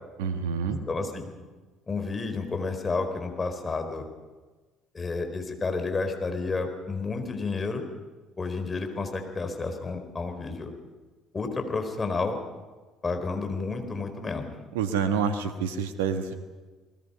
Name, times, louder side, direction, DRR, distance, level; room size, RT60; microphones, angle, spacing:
voice 1, 0.2-0.8 14.7-16.3, right 6 dB, 75° right, 8 dB, 1.5 m, -27 dB
voice 2, 0.7-1.3 1.9-4.0 4.9-7.8 8.4-10.7 11.3-12.4 13.0-14.5, left 3 dB, 25° left, 6 dB, 4.4 m, -31 dB
30.0 x 20.0 x 5.7 m, 1.3 s
figure-of-eight pair, 55°, 0 cm